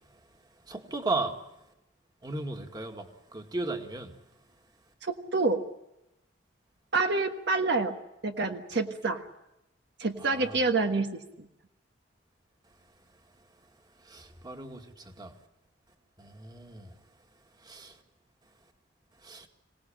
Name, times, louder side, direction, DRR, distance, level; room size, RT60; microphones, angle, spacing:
voice 1, 0.7-1.4 2.2-4.1 10.2-10.6 14.0-15.3 16.2-16.9 17.6-18.0 19.2-19.5, right 2 dB, 20° right, 2.1 m, -36 dB
voice 2, 5.0-5.6 6.9-7.9 8.2-9.2 10.0-11.2, right 3 dB, 60° right, 1.4 m, -27 dB
26.0 x 18.0 x 8.9 m
head